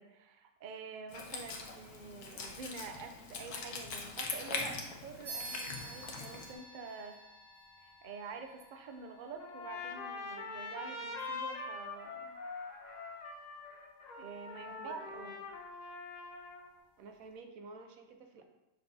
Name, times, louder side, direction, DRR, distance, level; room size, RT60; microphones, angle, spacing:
voice 1, 0.0-7.2 7.8-12.4 14.2-15.3, right 5 dB, 85° right, 5 dB, 0.4 m, -47 dB
Wind instrument woodwind instrument, 1.1-6.5, left 4 dB, 80° left, 1.4 m, -42 dB
sound 1, 5.2-15.2, right 2 dB, 50° right, 2.1 m, -52 dB
Trumpet, 9.4-16.7, left 3 dB, 40° left, 0.6 m, -43 dB
voice 2, 14.7-15.4 17.0-18.5, right 3 dB, 70° right, 5 dB, 1.1 m, -51 dB
6.6 x 5.8 x 2.7 m, 0.99 s
omnidirectional pair, 1.6 m